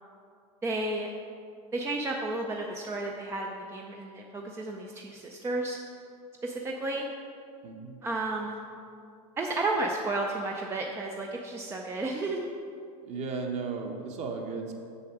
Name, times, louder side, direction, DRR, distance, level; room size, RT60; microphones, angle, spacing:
voice 1, 0.6-1.1 1.7-5.8 6.4-7.1 8.0-8.6 9.4-12.5, right 2 dB, 15° right, 1 dB, 0.5 m, -32 dB
voice 2, 7.6-8.0 13.0-14.7, right 4 dB, 35° right, 3 dB, 1.1 m, -35 dB
7.0 x 6.9 x 4.6 m, 2.4 s
supercardioid pair, 130°, 19 cm